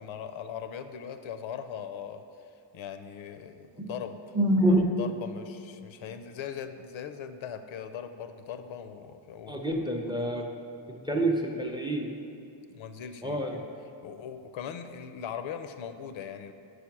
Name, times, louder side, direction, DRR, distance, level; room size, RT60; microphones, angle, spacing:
voice 1, 0.0-2.2 2.7-4.2 5.0-9.6 10.2-10.4 11.1-11.4 12.7-13.6 14.0-16.5, left 8 dB, 80° left, 9 dB, 0.5 m, -40 dB
voice 2, 4.3-4.9 9.5-10.5 11.0-12.1 13.2-13.6, right 1 dB, 10° right, 2 dB, 0.5 m, -26 dB
5.0 x 4.9 x 5.9 m, 2.5 s
wide cardioid pair, 130°, 47 cm